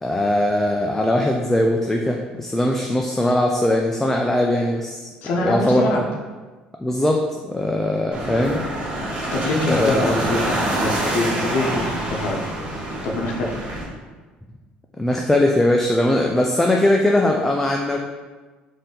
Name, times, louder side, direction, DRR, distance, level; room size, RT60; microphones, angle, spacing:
voice 1, 0.0-5.1 5.4-5.9 6.8-8.6 9.7-10.1 15.0-18.0, left 1 dB, 10° left, 1 dB, 0.3 m, -20 dB
voice 2, 5.2-6.0 9.3-12.6 13.0-13.6, left 2 dB, 70° left, -1 dB, 0.7 m, -24 dB
sound 1, 8.1-13.8, right 1 dB, 35° right, 1.3 m, -26 dB
4.0 x 2.7 x 3.8 m, 1.3 s
cardioid pair, 100°, 3 cm